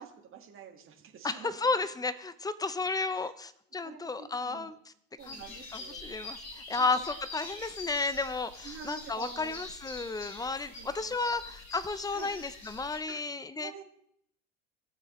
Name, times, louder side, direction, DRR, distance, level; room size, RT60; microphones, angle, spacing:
voice 1, 0.0-1.6 2.9-3.3 3.8-4.7 5.2-6.1 6.8-7.0 8.6-9.6 10.8-11.4 12.1-12.3 13.1-13.2 13.6-13.8, right 7 dB, 30° right, 3 dB, 1.7 m, -48 dB
voice 2, 1.2-4.7 5.2-13.7, left 3 dB, 10° left, 15 dB, 0.5 m, -33 dB
sound 1, 5.2-13.0, left 2 dB, 45° left, 4.3 m, -45 dB
16.5 x 7.2 x 3.1 m, 0.70 s
hypercardioid pair, 90°, 39 cm